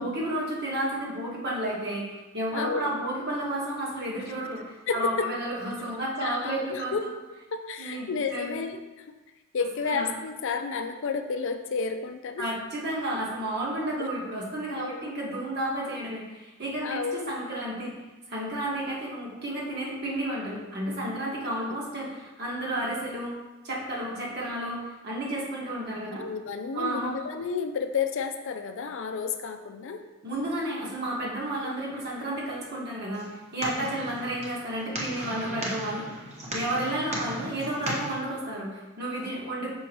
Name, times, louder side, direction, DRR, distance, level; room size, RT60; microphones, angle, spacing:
voice 1, 0.0-6.9 7.8-8.6 9.9-10.1 12.4-17.9 18.3-23.3 23.6-26.2 26.7-27.2 30.2-36.0 36.5-39.7, right 1 dB, 50° right, -5 dB, 1.7 m, -32 dB
voice 2, 2.5-2.9 4.9-5.3 6.2-7.0 7.5-9.1 9.5-12.5 14.0-14.1 14.8-15.1 16.8-17.3 21.7-21.8 26.0-30.0 34.0-34.1, left 5 dB, 60° left, 7 dB, 0.4 m, -31 dB
sound 1, 33.1-38.2, right 1 dB, 30° right, 1.1 m, -36 dB
6.1 x 5.2 x 3.0 m, 1.1 s
head